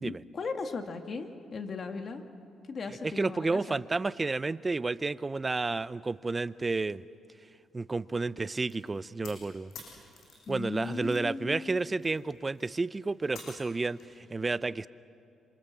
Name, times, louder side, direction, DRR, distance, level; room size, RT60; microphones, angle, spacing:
voice 1, 0.0-2.2 2.7-3.8 10.5-11.8, left 4 dB, 45° left, 5 dB, 2.0 m, -37 dB
voice 2, 3.0-7.0 7.7-9.7 10.5-14.9, right 3 dB, 25° right, 16 dB, 0.6 m, -31 dB
sound 1, 8.7-11.3 11.6-14.2, left 4 dB, 75° left, 7.9 m, -50 dB
27.0 x 26.0 x 7.4 m, 2.6 s
cardioid pair, 90°, 0 cm